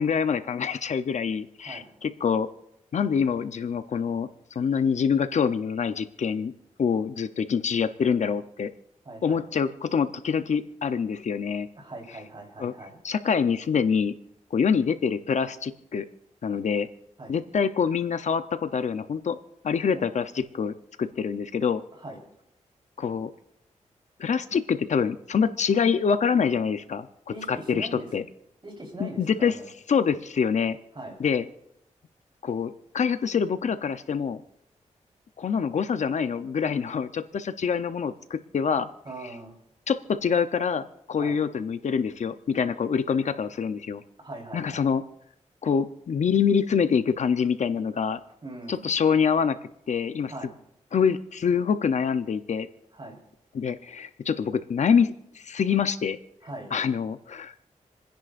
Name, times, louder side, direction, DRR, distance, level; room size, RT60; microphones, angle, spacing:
voice 1, 0.0-2.5 2.9-6.5 6.8-8.7 9.2-11.7 12.6-12.7 13.0-14.1 14.5-16.1 16.4-16.9 17.3-19.4 19.6-21.8 23.0-23.3 24.2-27.1 27.5-28.2 29.0-29.5 29.9-30.8 31.2-31.4 32.4-34.4 35.4-38.9 39.9-44.0 44.5-45.0 45.6-48.2 48.7-49.6 49.9-50.3 50.9-52.7 53.5-56.2 56.7-57.5, left 6 dB, 65° left, 11 dB, 0.7 m, -25 dB
voice 2, 1.6-1.9 9.0-9.5 11.7-13.0 17.2-17.4 19.9-20.1 21.9-22.2 27.3-28.1 28.6-29.7 30.9-31.2 39.0-39.6 41.1-41.4 44.2-44.9 48.4-48.8 50.3-50.6 52.9-53.2 56.4-56.7, right 2 dB, 40° right, 0 dB, 4.0 m, -41 dB
29.0 x 10.0 x 2.6 m, 0.79 s
cardioid pair, 80°, 13 cm